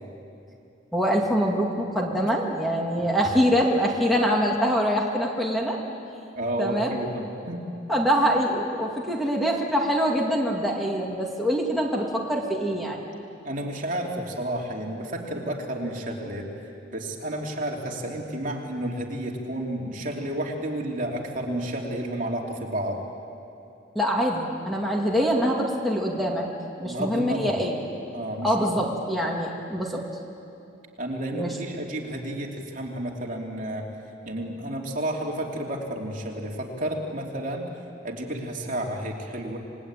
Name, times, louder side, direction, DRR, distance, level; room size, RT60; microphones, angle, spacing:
voice 1, 0.9-5.8 6.6-7.0 7.9-13.0 23.9-26.5 26.8-27.8 28.4-30.0 31.3-31.6, equal, ahead, -1 dB, 2.3 m, -24 dB
voice 2, 6.4-7.6 13.4-16.5 16.9-23.0 26.8-27.5 28.1-28.7 31.0-33.9 34.3-37.7 38.0-39.6, right 1 dB, 45° right, 0 dB, 3.0 m, -31 dB
28.5 x 20.0 x 8.9 m, 2.7 s
head